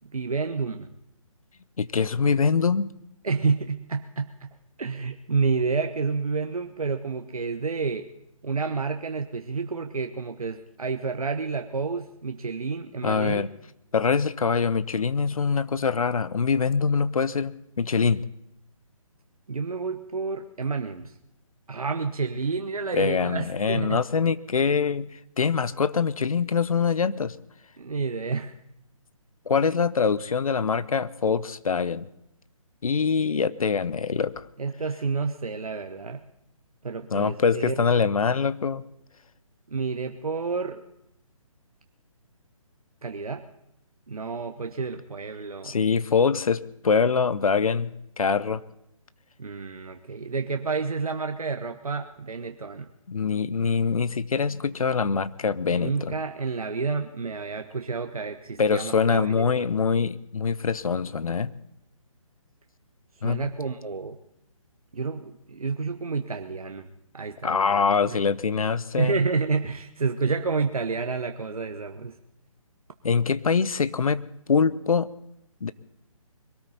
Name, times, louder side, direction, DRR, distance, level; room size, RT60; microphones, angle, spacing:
voice 1, 0.1-0.9 3.2-4.5 4.8-8.1 8.4-13.4 19.5-21.1 21.7-24.0 27.8-28.5 34.6-36.2 36.8-37.8 39.7-40.8 43.0-43.4 44.1-45.8 49.4-52.9 55.7-59.7 63.2-64.2 64.9-66.9 67.1-68.2 69.0-72.2, right 4 dB, 85° right, 5 dB, 1.0 m, -29 dB
voice 2, 1.8-2.9 13.0-13.5 13.9-18.3 22.9-27.4 29.5-32.1 32.8-34.5 37.1-38.8 45.6-48.6 53.1-56.2 58.6-61.5 63.2-63.4 67.4-69.2 73.0-75.1 75.6-75.7, left 5 dB, 75° left, 17 dB, 0.8 m, -24 dB
22.5 x 13.0 x 4.1 m, 0.80 s
figure-of-eight pair, 150°, 18 cm